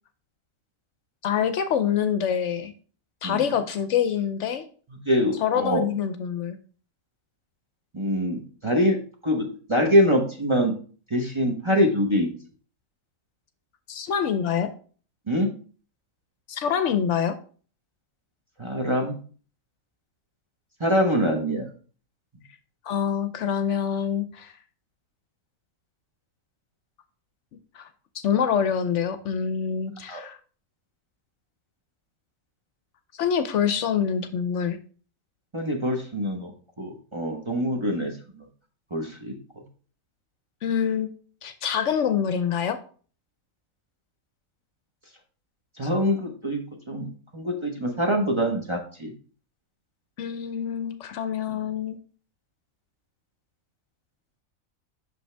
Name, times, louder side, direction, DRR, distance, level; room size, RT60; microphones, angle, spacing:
voice 1, 1.2-2.7 3.2-4.6 5.4-6.6 13.9-14.7 16.5-17.3 22.9-24.5 27.7-27.9 28.1-30.4 33.2-34.8 40.6-41.1 41.4-42.8 50.2-52.0, left 8 dB, 70° left, 10 dB, 0.9 m, -25 dB
voice 2, 5.1-5.8 7.9-9.0 9.2-10.7 11.1-12.3 15.3-15.5 18.6-19.2 20.8-21.7 30.1-30.2 35.5-36.5 36.8-38.1 38.9-39.3 45.8-46.6 46.9-49.1, equal, 25° right, 1 dB, 0.8 m, -24 dB
6.2 x 5.3 x 3.3 m, 0.41 s
omnidirectional pair, 1.4 m